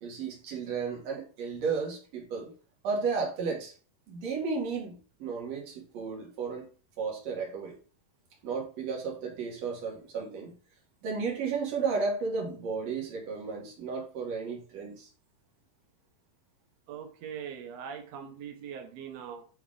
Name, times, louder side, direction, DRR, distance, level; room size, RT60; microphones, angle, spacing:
voice 1, 0.0-2.5 2.8-3.7 4.1-6.7 7.0-7.8 8.4-10.5 11.0-15.1, right 5 dB, 55° right, -1 dB, 2.5 m, -33 dB
voice 2, 16.9-19.4, right 8 dB, 80° right, 3 dB, 1.5 m, -41 dB
9.6 x 3.4 x 3.7 m, 0.39 s
omnidirectional pair, 4.2 m